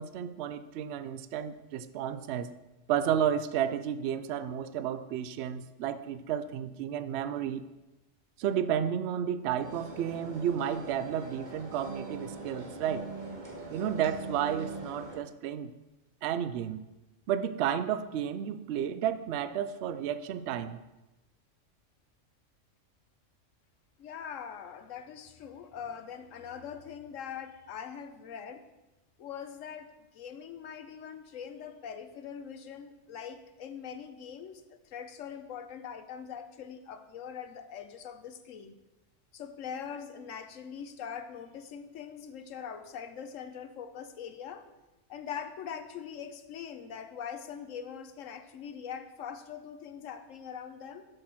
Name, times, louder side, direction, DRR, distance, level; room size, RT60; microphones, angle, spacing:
voice 1, 0.0-2.5 2.9-7.6 8.4-13.1 13.7-15.7 16.2-16.8 17.3-20.8, right 9 dB, 65° right, 13 dB, 0.8 m, -32 dB
sound 1, 9.6-15.2, right 3 dB, 35° right, 1.8 m, -42 dB
voice 2, 24.0-28.6 29.2-38.8 39.3-44.6 45.1-51.0, left 7 dB, 85° left, 9 dB, 1.1 m, -42 dB
7.9 x 6.5 x 6.1 m, 1.0 s
omnidirectional pair, 1.3 m